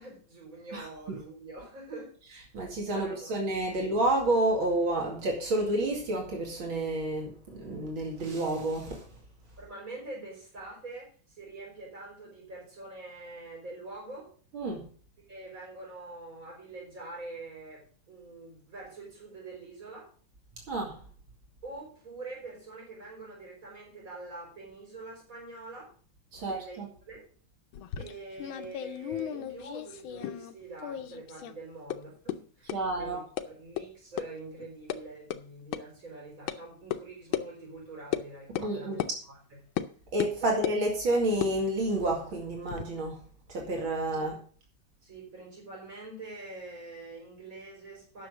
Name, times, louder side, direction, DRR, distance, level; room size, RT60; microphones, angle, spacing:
voice 1, 0.0-2.2 2.9-3.4 3.7-3.8 9.6-14.3 15.3-20.1 21.6-25.9 26.3-27.2 28.0-39.0 39.3-39.6 40.4-40.5 45.0-48.3, right 2 dB, 40° right, -3 dB, 5.4 m, -45 dB
voice 2, 2.5-9.0 14.5-14.8 20.7-21.0 26.3-26.9 32.7-33.2 38.6-39.0 40.1-43.2 43.5-44.3, right 1 dB, 85° right, 0 dB, 3.2 m, -29 dB
sound 1, 27.7-30.5 30.8-31.5 31.9-32.0 32.3-32.4 32.7-32.8 33.4-33.5 33.8-33.9 34.2-34.3 34.6-35.0 35.3-35.4 35.7-35.8 36.5-36.6 36.9-37.0 37.3-37.5 38.1-38.3 38.5-38.7 39.0-39.1 39.8-39.9 40.2-40.8 41.3-42.8, left 11 dB, 90° left, 1.5 m, -35 dB
10.0 x 6.5 x 6.6 m, 0.43 s
omnidirectional pair, 2.1 m